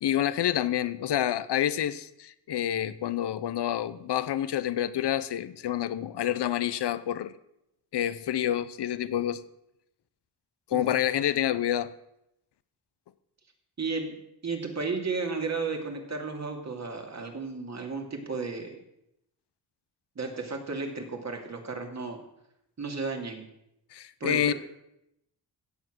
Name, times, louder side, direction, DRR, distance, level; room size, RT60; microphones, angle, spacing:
voice 1, 0.0-7.3 7.9-9.4 10.7-11.9 23.9-24.5, left 11 dB, 70° left, 0.8 m, -28 dB
voice 2, 10.7-11.0 13.8-14.2 14.4-18.8 20.2-22.2 22.8-23.4 24.2-24.5, right 4 dB, 40° right, 2.5 m, -33 dB
16.5 x 7.3 x 6.2 m
wide cardioid pair, 105°, 42 cm